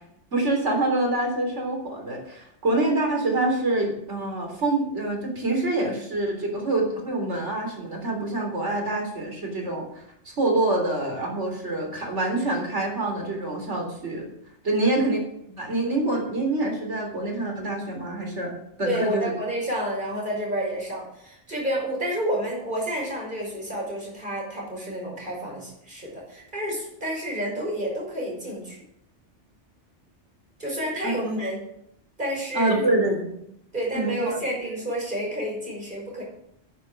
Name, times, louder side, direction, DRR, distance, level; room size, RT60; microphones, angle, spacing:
voice 1, 0.3-14.2 14.6-15.2 15.6-18.5 18.8-19.2 31.0-31.3 32.5-33.3 33.9-34.4, right 2 dB, 70° right, 1 dB, 4.0 m, -26 dB
voice 2, 18.8-28.8 30.6-31.6 32.2-32.9 33.7-36.2, equal, 40° right, -3 dB, 5.8 m, -30 dB
10.5 x 9.9 x 7.7 m, 0.75 s
omnidirectional pair, 1.2 m